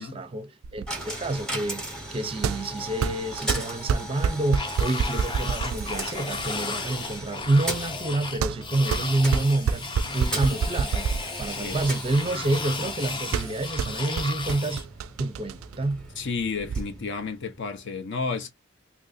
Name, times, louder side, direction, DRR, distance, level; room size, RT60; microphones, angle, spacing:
voice 1, 0.0-1.9 2.1-11.1 11.4-14.9 15.2-16.1, right 2 dB, 25° right, 0.5 m, -28 dB
sound 1, 0.6-16.8, right 6 dB, 85° right, 0.3 m, -30 dB
Coin (dropping), 0.9-17.8, right 1 dB, 5° left, 0.9 m, -38 dB
sound 2, 4.5-14.9, left 4 dB, 25° left, 0.5 m, -34 dB
voice 2, 11.4-11.8 16.2-18.5, left 4 dB, 60° left, 0.6 m, -32 dB
2.8 x 2.5 x 4.0 m
head